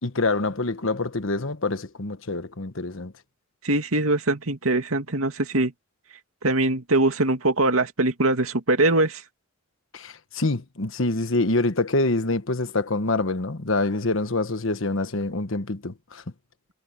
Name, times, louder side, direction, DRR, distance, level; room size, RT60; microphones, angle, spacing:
voice 1, 0.0-3.1 9.9-16.2, left 2 dB, 65° left, 1.3 m, -26 dB
voice 2, 3.6-5.7 6.4-9.2, right 2 dB, 80° right, 2.5 m, -22 dB
head